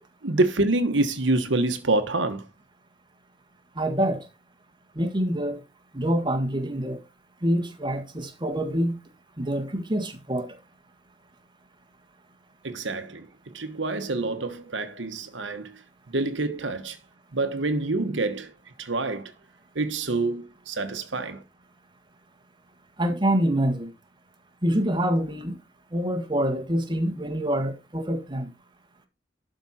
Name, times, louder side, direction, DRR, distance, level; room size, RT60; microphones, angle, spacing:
voice 1, 0.2-2.4 12.6-13.3 13.5-15.7 16.1-17.0 17.3-18.5 18.8-19.3 19.7-21.4, right 2 dB, 85° right, 1.3 m, -26 dB
voice 2, 3.7-4.3 4.9-5.6 5.9-7.0 7.4-9.0 9.4-10.5 23.0-23.9 24.6-25.6 25.9-28.5, right 1 dB, 25° right, 1.7 m, -26 dB
12.0 x 5.3 x 4.3 m
head